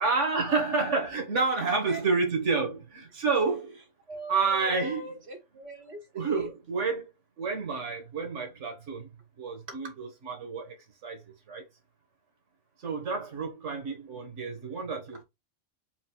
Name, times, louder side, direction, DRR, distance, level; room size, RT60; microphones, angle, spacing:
voice 1, 0.0-3.8 4.3-5.1 6.1-7.0 7.4-9.1 9.4-10.7 11.0-11.2 11.5-11.6 12.8-15.2, right 4 dB, 85° right, 1.6 m, -29 dB
voice 2, 4.1-6.5, right 1 dB, 65° right, 1.8 m, -41 dB
4.6 x 2.3 x 4.3 m
omnidirectional pair, 1.2 m